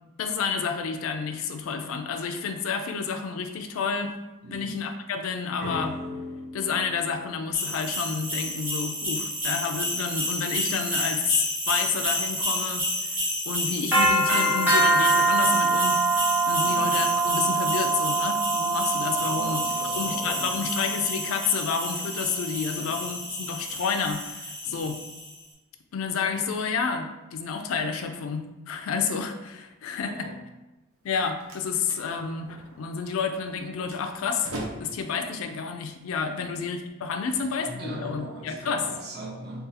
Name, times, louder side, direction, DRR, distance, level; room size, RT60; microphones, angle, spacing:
voice 1, 0.2-4.1 4.5-6.0 6.5-13.2 13.5-16.0 16.5-19.6 20.0-25.0 25.9-30.3 31.0-34.5 34.8-38.9, left 5 dB, 70° left, 6 dB, 0.3 m, -30 dB
voice 2, 4.4-4.8 16.6-17.0 19.2-20.6 22.7-23.0 24.6-24.9 30.0-30.4 36.3-36.6 37.3-39.7, right 1 dB, 50° right, -3 dB, 0.7 m, -40 dB
sound 1, 5.6-8.5, left 2 dB, 30° right, 1.2 m, -38 dB
sound 2, 7.5-25.3, right 2 dB, 10° right, 0.8 m, -26 dB
Slam, 30.9-36.9, right 1 dB, 75° right, 0.7 m, -43 dB
3.7 x 2.3 x 2.7 m, 1.1 s
head